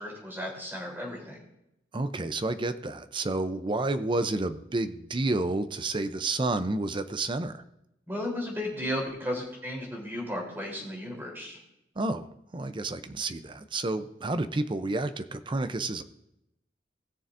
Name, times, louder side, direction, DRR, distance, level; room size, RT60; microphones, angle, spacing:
voice 1, 0.0-1.4 8.1-11.6, left 1 dB, 15° right, -2 dB, 3.5 m, -34 dB
voice 2, 1.9-7.6 12.0-12.2 12.5-16.0, right 2 dB, 30° right, 11 dB, 0.6 m, -30 dB
20.0 x 6.8 x 2.6 m, 0.86 s
head